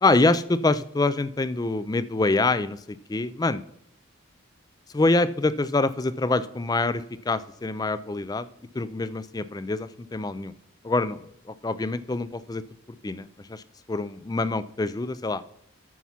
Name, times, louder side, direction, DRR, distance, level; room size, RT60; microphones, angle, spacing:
voice 1, 0.0-3.6 4.9-8.5 8.7-10.5 10.8-11.2 11.5-12.6 13.0-13.6 13.9-15.4, left 2 dB, 20° left, 15 dB, 0.3 m, -25 dB
9.3 x 5.7 x 5.7 m, 0.72 s
head